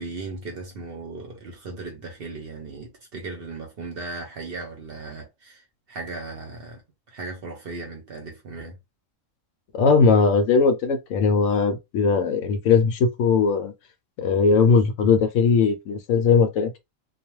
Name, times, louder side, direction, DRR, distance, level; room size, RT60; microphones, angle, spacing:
voice 1, 0.0-6.8 7.1-8.8, right 3 dB, 55° right, 0.8 m, -37 dB
voice 2, 9.7-13.7 14.2-16.8, left 5 dB, 70° left, 0.9 m, -19 dB
2.3 x 2.3 x 3.0 m
omnidirectional pair, 1.4 m